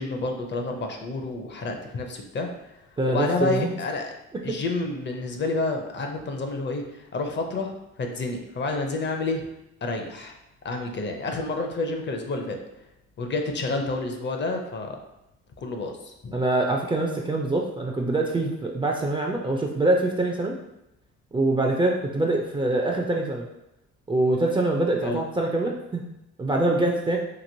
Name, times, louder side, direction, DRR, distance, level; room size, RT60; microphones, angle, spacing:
voice 1, 0.0-2.5 3.1-4.1 4.4-9.5 9.8-10.3 10.6-12.6 13.2-15.0 15.6-16.4 25.0-25.2, left 3 dB, 35° left, 3 dB, 0.5 m, -29 dB
voice 2, 3.0-3.7 4.5-4.6 16.3-20.6 21.3-23.5 24.1-26.0 26.4-27.2, right 2 dB, 15° right, 0 dB, 0.3 m, -24 dB
3.0 x 2.8 x 2.6 m, 0.88 s
cardioid pair, 90°, 30 cm